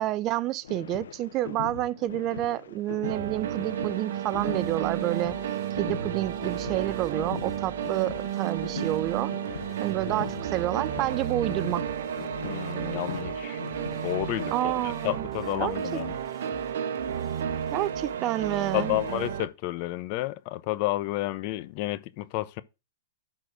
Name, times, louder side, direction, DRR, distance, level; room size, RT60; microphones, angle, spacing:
voice 1, 0.0-5.4 5.8-9.3 9.8-11.9 14.5-15.3 15.6-15.8 17.7-19.0, right 14 dB, 35° right, 0.5 m, -29 dB
sound 1, 0.6-14.5, left 9 dB, 80° left, 0.8 m, -41 dB
Orchestral Music (rather calm), 3.0-19.5, right 9 dB, 75° right, 1.0 m, -32 dB
sound 2, 4.3-19.3, left 6 dB, 15° left, 3.0 m, -52 dB
voice 2, 12.4-13.6 14.0-16.2 18.7-22.6, left 17 dB, 45° left, 0.9 m, -31 dB
11.5 x 4.3 x 6.2 m
hypercardioid pair, 130°, 0 cm